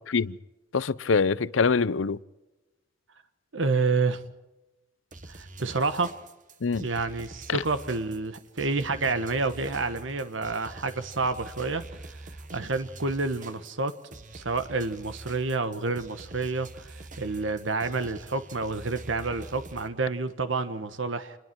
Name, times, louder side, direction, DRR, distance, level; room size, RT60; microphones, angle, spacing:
voice 1, 0.7-2.2 6.6-6.9 7.5-7.6, left 4 dB, 85° left, 0.7 m, -24 dB
voice 2, 3.5-4.2 5.3-6.1 6.8-12.2 12.5-13.9 14.3-21.4, right 3 dB, 75° right, 1.3 m, -29 dB
sound 1, 5.1-19.9, right 2 dB, 45° right, 1.5 m, -45 dB
28.5 x 21.5 x 4.6 m
head